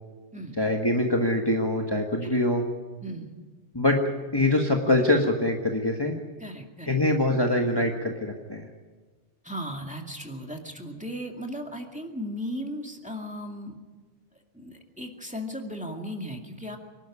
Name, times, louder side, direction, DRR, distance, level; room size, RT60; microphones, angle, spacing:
voice 1, 0.6-2.6 3.7-4.0 4.3-6.1 6.9-8.7, left 1 dB, 20° left, 1 dB, 1.6 m, -24 dB
voice 2, 3.0-3.3 6.4-7.0 9.4-13.8 14.3-16.8, equal, 5° right, 2 dB, 2.3 m, -36 dB
25.0 x 11.5 x 10.0 m, 1.3 s
omnidirectional pair, 1.2 m